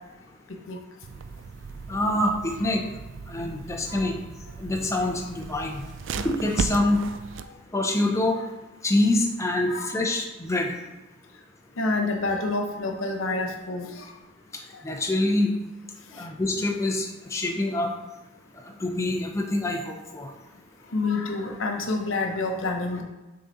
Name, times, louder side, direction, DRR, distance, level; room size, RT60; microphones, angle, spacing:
sound 1, 1.0-7.4, right 5 dB, 65° right, 0.4 m, -36 dB
voice 1, 1.9-2.8 3.3-4.2 4.6-5.8 6.2-7.0 7.7-8.3 8.8-10.7 14.8-15.5 16.2-17.9 18.8-20.3, left 1 dB, 15° left, 0 dB, 0.6 m, -25 dB
voice 2, 11.8-14.0 16.2-16.3 20.9-23.0, left 3 dB, 90° left, 3 dB, 0.8 m, -28 dB
6.5 x 3.9 x 3.9 m, 1.1 s
head